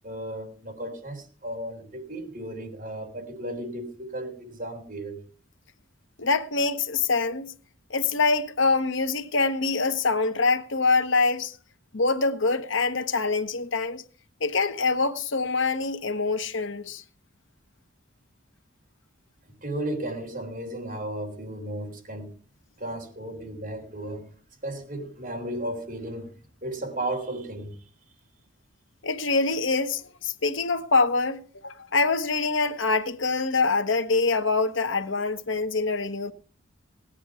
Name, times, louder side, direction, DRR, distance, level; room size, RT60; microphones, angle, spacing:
voice 1, 0.0-5.2 19.6-22.3 22.8-24.3 24.6-26.3 26.6-27.8, right 1 dB, 40° right, 3.8 m, -34 dB
voice 2, 6.2-7.5 7.9-11.6 11.9-14.0 14.4-17.0 29.0-36.3, left 3 dB, 75° left, 1.1 m, -25 dB
18.5 x 10.0 x 4.8 m
head